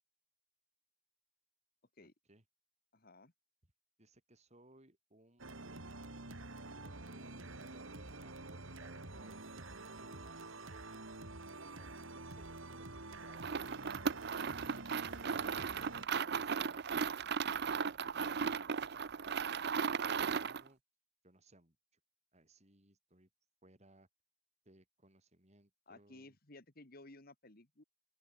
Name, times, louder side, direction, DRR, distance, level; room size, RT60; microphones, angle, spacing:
voice 1, 2.0-2.4 4.0-5.5 6.4-11.0 11.6-13.8 14.2-14.3 19.9-20.8 21.2-22.0 22.3-23.3 23.6-24.1 24.6-26.4, right 1 dB, 35° right, 5.2 m, -65 dB
voice 2, 2.9-3.3 25.9-27.8, left 2 dB, 45° left, 2.2 m, -57 dB
sound 1, 5.4-16.1, right 2 dB, 75° right, 3.9 m, -48 dB
sound 2, 13.3-20.7, right 6 dB, 55° right, 0.6 m, -36 dB
open air
head